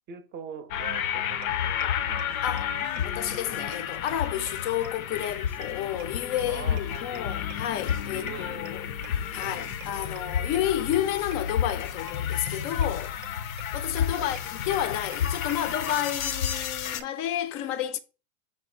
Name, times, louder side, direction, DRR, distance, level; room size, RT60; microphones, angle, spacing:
voice 1, 0.1-2.4 6.5-7.5 8.1-8.8 9.3-9.7 14.1-14.4, right 7 dB, 25° right, 0.6 m, -43 dB
sound 1, 0.7-17.0, left 9 dB, 80° left, 0.6 m, -31 dB
sound 2, 1.4-1.5 1.8-1.9 2.2-2.3 2.6-2.7 3.0-3.1 3.3-3.4 3.7-3.8 4.1-4.2 4.5-4.6 4.8-4.9 5.2-5.3 5.6-5.7 6.0-6.1 6.4-6.5 6.8-6.9 7.1-7.2 7.5-7.6 7.9-8.0 8.3-8.4 8.7-8.8 9.0-9.1 9.4-9.5 9.8-9.9 10.2-10.3 10.5-10.6 10.9-11.0 11.3-11.4 11.7-11.8 12.1-12.2 12.5-12.6 12.8-12.9 13.2-13.3 13.6-13.7 14.0-14.1 14.3-14.4 14.7-14.8 15.1-15.2 15.5-15.6 15.9-16.0 16.3-16.4 16.6-16.7 17.0-17.1, right 13 dB, 70° right, 0.6 m, -45 dB
voice 2, 2.4-2.7 3.0-8.9 9.3-13.2 13.7-14.4 14.7-18.0, left 11 dB, 35° left, 0.4 m, -31 dB
5.6 x 2.1 x 4.2 m
hypercardioid pair, 105°, 42 cm